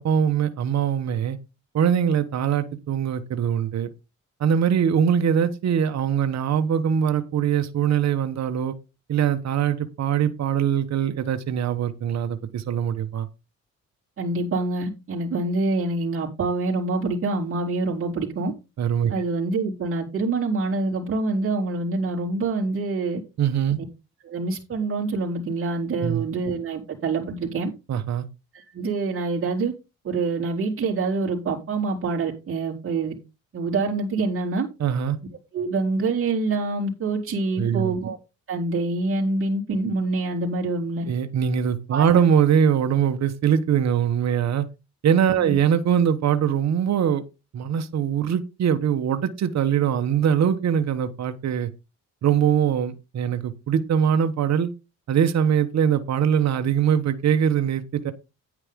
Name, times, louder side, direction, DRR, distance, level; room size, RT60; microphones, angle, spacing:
voice 1, 0.0-1.4 1.7-3.9 4.4-8.8 9.1-13.3 18.8-19.1 23.4-23.8 26.0-26.3 27.9-28.3 34.8-35.2 37.6-37.9 41.1-44.7 45.0-47.2 47.5-51.7 52.2-54.7 55.1-58.1, right 8 dB, 60° right, 1.3 m, -22 dB
voice 2, 14.2-18.5 19.1-23.2 24.2-27.7 28.5-29.7 30.0-33.1 33.5-34.7 35.5-38.2 38.5-41.1 41.9-42.0 45.4-45.5, right 3 dB, 45° right, 3.9 m, -26 dB
9.7 x 9.6 x 3.7 m
cardioid pair, 90°, 30 cm